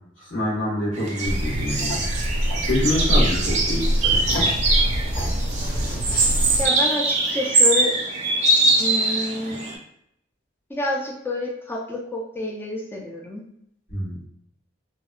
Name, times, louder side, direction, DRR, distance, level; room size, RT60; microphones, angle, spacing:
voice 1, 0.2-2.0 2.7-4.4 13.9-14.2, left 1 dB, 90° left, -7 dB, 1.3 m, -26 dB
sound 1, 0.9-9.7, right 2 dB, 40° right, 0.5 m, -23 dB
sound 2, 1.2-6.7, equal, 45° left, 0.8 m, -25 dB
voice 2, 6.6-7.9 8.8-9.6 10.7-13.4, left 2 dB, 10° left, -1 dB, 0.3 m, -28 dB
2.7 x 2.1 x 2.4 m, 0.72 s
head